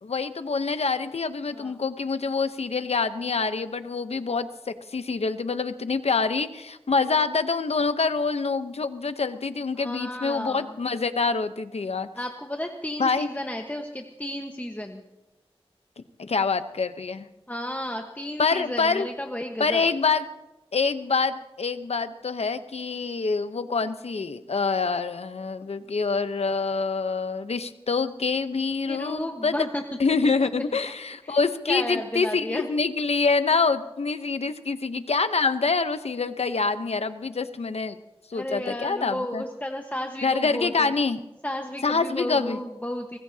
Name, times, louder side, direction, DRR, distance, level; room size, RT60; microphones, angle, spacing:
voice 1, 0.0-12.1 13.0-13.3 16.2-17.3 18.4-19.1 19.6-20.3 20.7-29.6 30.0-38.0 38.3-39.4 40.2-41.2 41.8-42.6, left 4 dB, 85° left, 10 dB, 0.9 m, -26 dB
voice 2, 1.5-1.8 9.7-10.8 12.1-15.0 17.5-19.8 28.8-29.8 30.2-30.3 30.8-30.9 31.2-31.4 31.7-32.7 38.3-40.9 41.4-43.2, left 1 dB, 15° left, 2 dB, 1.3 m, -33 dB
24.0 x 20.0 x 2.8 m, 0.96 s
wide cardioid pair, 55°, 10 cm